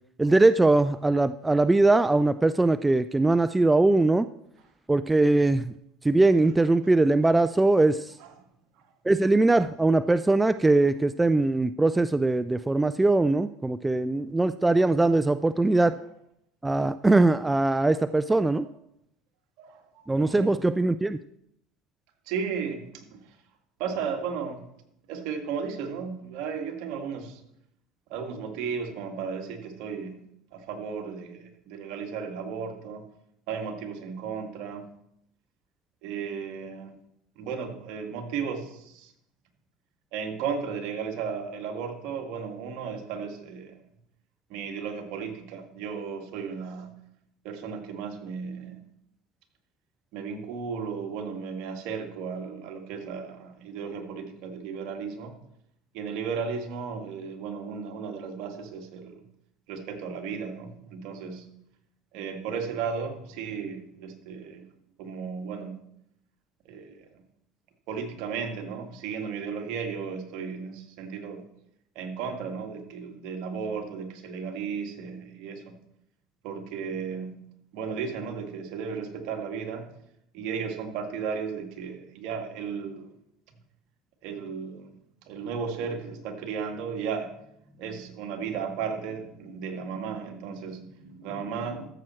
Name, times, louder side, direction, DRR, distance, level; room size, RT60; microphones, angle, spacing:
voice 1, 0.2-4.3 4.9-5.7 6.0-8.1 9.0-16.0 16.6-18.7 20.1-21.2, right 2 dB, 10° right, 12 dB, 0.3 m, -21 dB
voice 2, 8.1-8.4 10.4-10.5 14.7-14.9 15.8-15.9 18.6-18.7 19.6-20.5 22.3-23.3 23.8-24.7 25.1-27.4 28.1-30.2 30.5-33.0 33.5-34.9 36.0-36.9 37.4-39.1 40.1-43.8 44.5-47.0 47.4-48.8 50.1-55.3 55.9-59.2 59.7-61.5 62.1-64.6 65.0-65.8 66.7-67.2 67.9-71.5 72.0-75.8 76.4-77.4 77.7-80.0 80.3-83.1 84.2-85.0 85.3-87.3 87.6-91.9, right 6 dB, 65° right, 3 dB, 2.1 m, -35 dB
14.0 x 7.6 x 4.4 m, 0.77 s
supercardioid pair, 115°, 0 cm